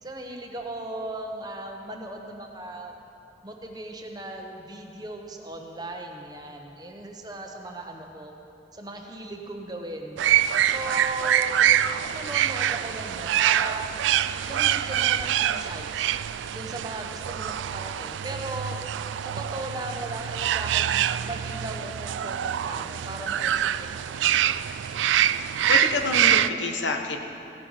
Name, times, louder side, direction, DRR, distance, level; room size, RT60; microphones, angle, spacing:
voice 1, 0.0-2.9 3.4-8.3 8.7-10.2 10.7-11.7 12.0-16.1 16.5-18.8 19.2-23.7 23.9-24.7, right 2 dB, 20° right, 2 dB, 0.9 m, -37 dB
sound 1, 10.2-26.5, right 10 dB, 85° right, 0.3 m, -25 dB
voice 2, 25.7-27.2, left 3 dB, 85° left, 4 dB, 1.0 m, -27 dB
16.5 x 9.1 x 4.9 m, 2.8 s
head